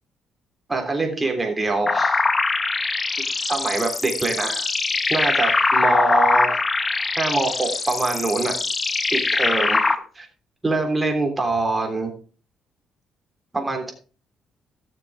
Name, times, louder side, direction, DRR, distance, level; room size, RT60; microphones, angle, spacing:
voice 1, 0.7-2.2 3.5-4.7 5.1-6.6 7.2-8.6 9.1-9.8 10.2-10.3 10.6-12.1 13.5-13.9, right 3 dB, 20° right, 3 dB, 3.3 m, -24 dB
sound 1, 1.9-9.9, left 3 dB, 25° left, 1.1 m, -22 dB
17.0 x 6.9 x 3.6 m, 0.37 s
cardioid pair, 95°, 0 cm